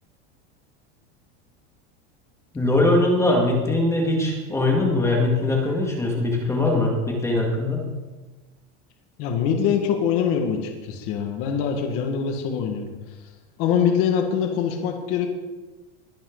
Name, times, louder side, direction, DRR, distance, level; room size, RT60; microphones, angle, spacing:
voice 1, 2.5-7.8, left 2 dB, 10° left, 0 dB, 2.2 m, -21 dB
voice 2, 9.2-12.9 13.6-15.3, left 7 dB, 40° left, 3 dB, 1.9 m, -23 dB
21.5 x 11.0 x 4.0 m, 1.2 s
supercardioid pair, 170°, 33 cm